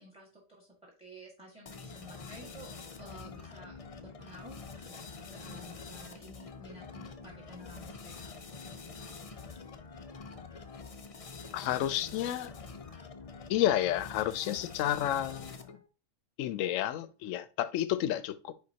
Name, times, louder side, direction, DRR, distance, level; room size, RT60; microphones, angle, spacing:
voice 1, 0.0-2.7 3.0-8.1, equal, 5° right, 1.6 m, -52 dB
sound 1, 1.7-15.9, left 4 dB, 45° left, 0.4 m, -46 dB
voice 2, 11.5-12.6 13.5-15.8 16.4-18.5, left 12 dB, 70° left, 0.9 m, -31 dB
9.6 x 4.0 x 2.8 m
omnidirectional pair, 1.5 m